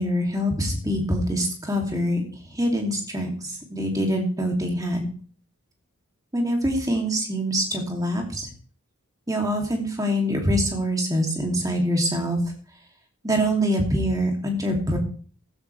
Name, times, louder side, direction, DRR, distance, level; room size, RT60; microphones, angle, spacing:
voice 1, 0.0-2.2 2.5-5.1 6.3-8.5 9.3-12.4 13.2-15.0, equal, 15° right, 2 dB, 2.8 m, -24 dB
15.5 x 12.5 x 3.4 m, 0.42 s
head